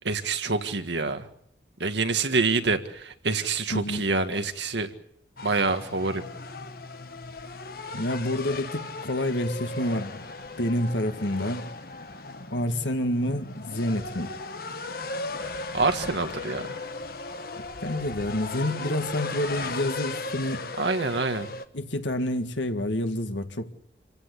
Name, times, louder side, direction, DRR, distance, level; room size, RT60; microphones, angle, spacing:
voice 1, 0.0-1.3 1.8-4.9 5.4-6.2 15.7-16.7 20.8-21.5, right 3 dB, 75° right, 1.7 m, -26 dB
voice 2, 3.7-4.0 7.9-10.2 10.6-11.7 12.5-14.3 17.8-20.6 21.7-23.7, left 1 dB, 85° left, 2.0 m, -28 dB
sound 1, 5.4-21.7, left 3 dB, 55° left, 1.2 m, -37 dB
27.0 x 16.0 x 8.5 m
head